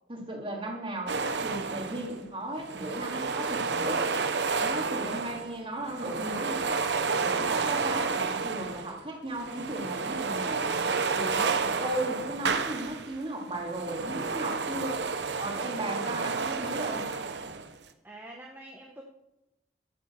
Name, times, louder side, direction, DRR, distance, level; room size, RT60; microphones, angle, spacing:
voice 1, 0.1-4.0 4.5-6.8 7.2-10.6 11.1-15.0 15.4-17.1, right 1 dB, 30° right, 0 dB, 3.0 m, -36 dB
sound 1, 1.1-2.2 2.5-5.6 5.8-9.0 9.3-13.2 13.5-17.7, right 4 dB, 80° right, 1.0 m, -30 dB
voice 2, 11.5-11.8 18.0-19.0, right 1 dB, 10° right, 0 dB, 1.2 m, -46 dB
13.0 x 7.7 x 7.5 m, 0.94 s
head